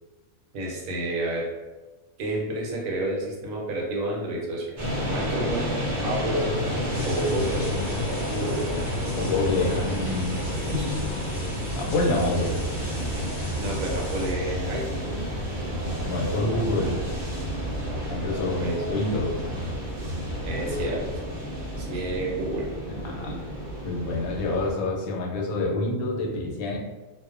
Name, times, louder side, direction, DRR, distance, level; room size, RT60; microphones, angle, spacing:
voice 1, 0.5-1.5 2.2-4.7 5.0-5.6 6.0-6.5 7.0-7.7 8.3-8.7 10.6-11.1 13.6-15.3 18.6-19.3 20.4-21.1 21.8-22.7, right 1 dB, 75° right, -2 dB, 1.0 m, -30 dB
sound 1, 4.8-24.7, equal, 40° right, 0.8 m, -30 dB
sound 2, 6.9-14.3, left 1 dB, 25° left, 1.0 m, -41 dB
voice 2, 9.2-10.4 11.7-12.6 16.0-17.0 18.1-19.3 23.0-23.4 23.8-26.8, left 2 dB, 80° left, -1 dB, 1.0 m, -27 dB
2.4 x 2.1 x 2.4 m, 1.2 s
omnidirectional pair, 1.5 m